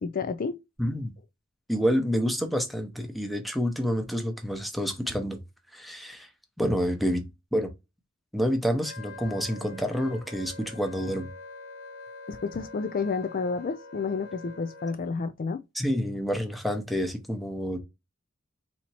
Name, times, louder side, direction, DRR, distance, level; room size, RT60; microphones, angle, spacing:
voice 1, 0.0-0.6 12.3-15.6, left 4 dB, 45° left, 0.4 m, -30 dB
voice 2, 0.8-1.1 1.7-5.4 5.7-6.3 6.6-7.2 7.5-7.7 8.3-11.3 15.7-17.8, equal, ahead, 0.8 m, -28 dB
Wind instrument woodwind instrument, 8.8-15.0, left 3 dB, 60° left, 1.2 m, -44 dB
4.2 x 2.9 x 4.3 m
head